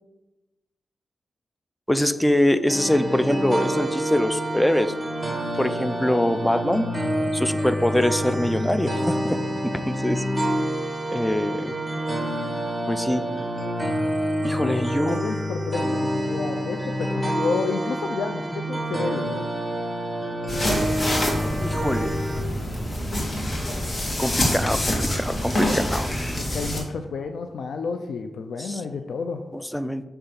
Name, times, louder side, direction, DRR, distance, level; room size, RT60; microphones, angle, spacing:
voice 1, 1.9-4.9 5.5-6.9 7.3-9.4 9.6-10.2 11.1-11.7 12.9-13.2 14.4-15.2 21.6-22.1 24.2-26.4 28.6-28.8 29.7-30.0, left 1 dB, 5° left, 11 dB, 0.5 m, -24 dB
sound 1, 2.7-22.4, equal, 10° right, 2.2 m, -27 dB
voice 2, 14.4-19.4 26.4-29.4, left 4 dB, 85° left, 6 dB, 0.4 m, -30 dB
sound 2, 20.5-26.8, left 1 dB, 35° left, 2.1 m, -26 dB
6.8 x 3.4 x 5.7 m, 1.0 s
cardioid pair, 60°, 0 cm